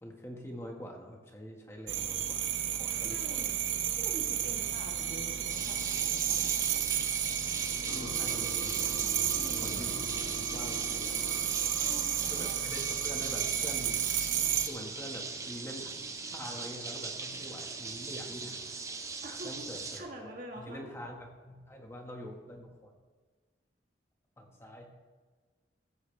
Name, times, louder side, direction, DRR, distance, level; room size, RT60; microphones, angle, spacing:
voice 1, 0.0-3.4 4.5-4.6 7.9-9.1 9.6-11.5 12.3-14.0 14.6-15.9 16.3-18.7 19.4-20.1 20.6-21.2 21.4-22.9 24.4-24.9, equal, 15° left, 1 dB, 1.4 m, -45 dB
sound 1, 1.9-14.7, right 10 dB, 90° right, 0.8 m, -32 dB
voice 2, 2.9-3.6 4.0-6.9 9.3-9.9 11.7-12.5 19.2-21.0, right 1 dB, 45° right, 0 dB, 1.8 m, -46 dB
sound 2, 5.5-20.0, right 4 dB, 15° right, 0.7 m, -41 dB
sound 3, 7.9-13.5, left 1 dB, 80° left, 2.3 m, -45 dB
15.5 x 8.0 x 3.4 m, 1.4 s
head